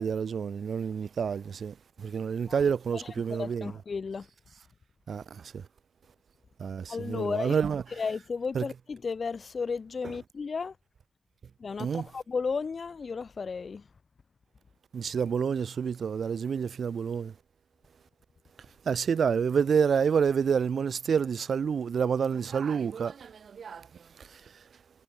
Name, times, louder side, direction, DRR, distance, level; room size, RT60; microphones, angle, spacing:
voice 1, 0.0-3.7 5.1-5.6 6.6-7.8 8.5-8.6 11.8-12.1 14.9-17.3 18.8-23.9 24.2-24.4, right 6 dB, 90° right, 1.4 m, -28 dB
voice 2, 3.0-4.3 6.9-7.6 7.9-10.8 11.6-13.9, left 5 dB, 60° left, 2.7 m, -34 dB
wide cardioid pair, 85°, 0 cm